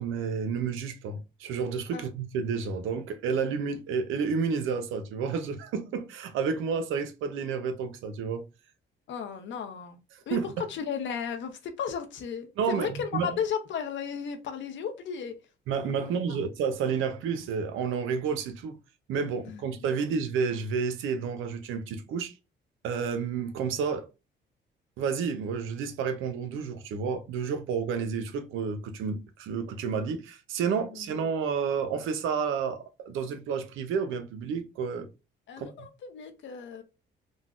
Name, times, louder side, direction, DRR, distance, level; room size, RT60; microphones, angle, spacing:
voice 1, 0.0-8.4 10.1-10.5 12.6-13.4 15.7-18.8 19.1-22.3 22.8-24.1 25.0-35.1 35.6-35.7, right 6 dB, 85° right, 0.6 m, -30 dB
voice 2, 9.1-10.0 10.3-10.4 10.7-15.3 19.5-20.0 35.5-36.8, left 7 dB, 70° left, 0.7 m, -34 dB
3.8 x 2.1 x 2.4 m
cardioid pair, 90°, 20 cm